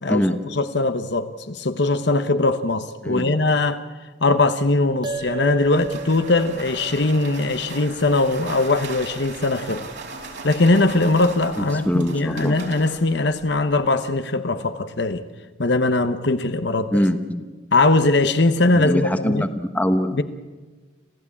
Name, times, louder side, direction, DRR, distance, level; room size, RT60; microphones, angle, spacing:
voice 1, 0.0-3.8 4.2-9.9 10.4-15.2 15.6-17.1 17.7-19.4 20.1-20.2, left 2 dB, 60° left, 1.1 m, -20 dB
sound 1, 5.0-9.7, right 4 dB, 25° right, 0.9 m, -37 dB
sound 2, 5.1-13.8, right 3 dB, 60° right, 4.0 m, -38 dB
voice 2, 11.6-12.6 16.9-17.4 18.7-20.2, equal, 10° left, 1.1 m, -23 dB
27.0 x 15.5 x 8.6 m
head